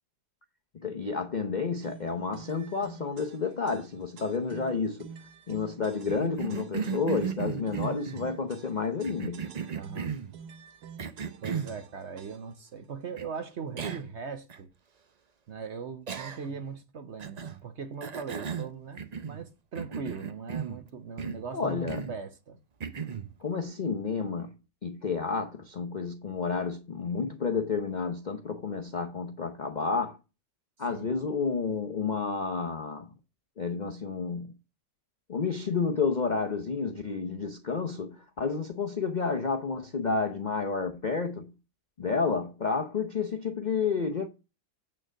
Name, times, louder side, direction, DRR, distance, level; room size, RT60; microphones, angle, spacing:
voice 1, 0.8-5.1 5.5-9.4 21.5-22.0 23.4-24.5 24.8-30.2 30.8-33.1 33.6-34.5 35.3-41.5 42.0-44.3, left 4 dB, 50° left, 0.5 m, -30 dB
sound 1, 1.8-12.7, right 6 dB, 70° right, 1.4 m, -50 dB
Cough, 6.1-8.3 9.0-10.3 11.0-11.8 13.2-13.3 13.8-14.1 14.5-14.6 16.1-16.6 17.2-17.6 18.0-19.4 19.7-20.8 21.2-21.5 21.9-22.2 22.8-23.3, right 6 dB, 90° right, 0.3 m, -35 dB
voice 2, 9.7-10.1 11.4-14.7 15.5-22.6 30.9-31.1, right 6 dB, 50° right, 0.9 m, -40 dB
8.9 x 4.4 x 6.3 m
omnidirectional pair, 1.8 m